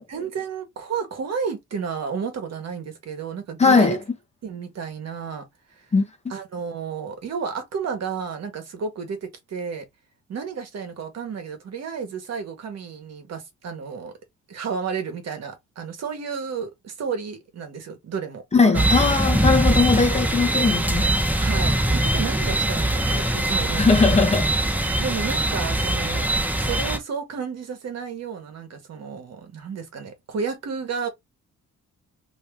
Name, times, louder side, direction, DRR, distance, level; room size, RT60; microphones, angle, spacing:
voice 1, 0.1-4.0 4.4-5.5 6.3-9.8 10.3-14.1 14.5-18.9 21.4-24.2 25.0-26.3 26.6-31.1, right 6 dB, 60° right, 1.2 m, -32 dB
voice 2, 3.6-4.0 5.9-6.1 18.5-21.1 23.8-24.5, left 4 dB, 20° left, 0.8 m, -19 dB
sound 1, 18.7-27.0, right 1 dB, 5° right, 0.9 m, -22 dB
2.8 x 2.8 x 3.5 m
cardioid pair, 90°, 30 cm